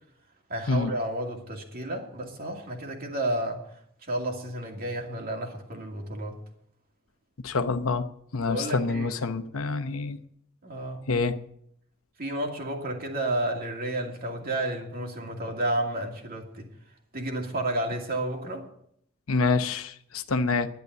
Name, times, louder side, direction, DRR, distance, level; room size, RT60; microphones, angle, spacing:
voice 1, 0.5-3.6 4.0-6.4 8.4-9.1 10.6-11.0 12.2-16.7 17.1-18.6, right 1 dB, 45° right, 2.4 m, -31 dB
voice 2, 7.4-8.0 8.3-10.2 11.1-11.4 19.3-20.7, left 4 dB, 85° left, 0.9 m, -26 dB
11.0 x 10.5 x 6.8 m
head